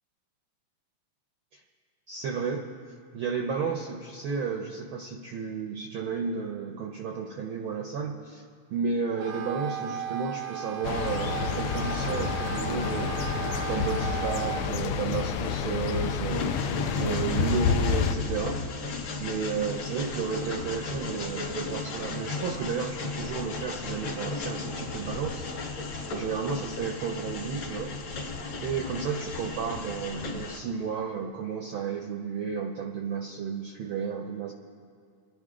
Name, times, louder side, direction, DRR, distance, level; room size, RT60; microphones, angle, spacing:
voice 1, 2.1-2.7 3.1-8.4 8.7-13.1 13.7-16.5 16.9-18.6 19.2-25.5 26.1-28.3 28.6-34.5, right 6 dB, 75° right, 1 dB, 1.2 m, -32 dB
Wind instrument woodwind instrument, 9.1-14.7, right 8 dB, 90° right, 2.5 m, -35 dB
sound 1, 10.8-18.2, left 6 dB, 80° left, 1.3 m, -29 dB
Train, 16.3-30.6, left 3 dB, 50° left, 1.7 m, -35 dB
25.0 x 10.0 x 3.7 m, 2.4 s
omnidirectional pair, 3.3 m